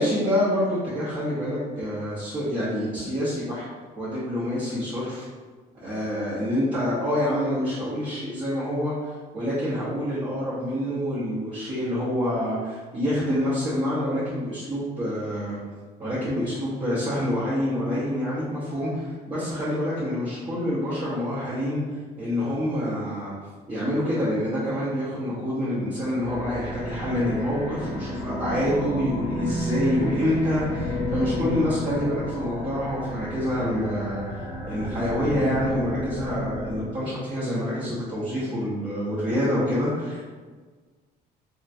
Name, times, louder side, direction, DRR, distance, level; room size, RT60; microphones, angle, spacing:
voice 1, 0.0-3.7 4.0-5.3 5.8-15.6 16.0-21.8 22.2-23.3 23.7-34.2 34.6-40.2, equal, 30° right, -10 dB, 0.8 m, -27 dB
sound 1, 26.1-36.9, equal, 85° left, 1.2 m, -32 dB
2.9 x 2.2 x 2.6 m, 1.4 s
cardioid pair, 110°, 17 cm